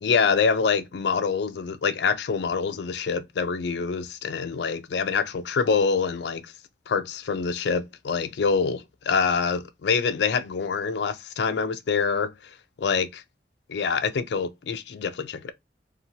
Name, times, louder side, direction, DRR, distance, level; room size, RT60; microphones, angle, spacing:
voice 1, 0.0-6.5 6.9-12.3 12.8-13.2 13.7-15.5, left 5 dB, 80° left, 0.4 m, -25 dB
2.8 x 2.3 x 2.6 m
head